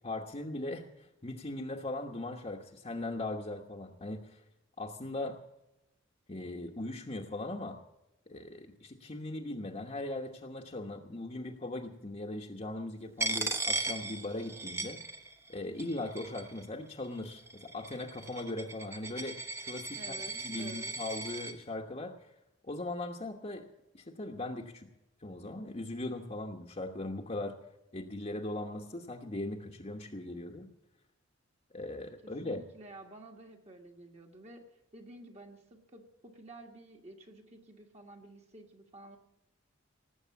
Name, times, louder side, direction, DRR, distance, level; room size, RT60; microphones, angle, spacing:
voice 1, 0.0-4.4 4.8-5.4 6.3-7.8 8.3-15.0 15.5-19.4 19.6-22.3 22.6-23.6 23.9-24.9 25.2-27.6 27.9-30.7 31.7-32.6, left 2 dB, 35° left, 1 dB, 1.1 m, -39 dB
Coin (dropping), 13.2-15.5 15.8-16.6 17.3-21.5, right 3 dB, 15° right, 0.9 m, -37 dB
voice 2, 20.0-20.9 32.2-34.7 34.9-39.2, right 1 dB, 35° right, 2 dB, 1.6 m, -51 dB
18.5 x 8.2 x 8.3 m, 0.91 s
head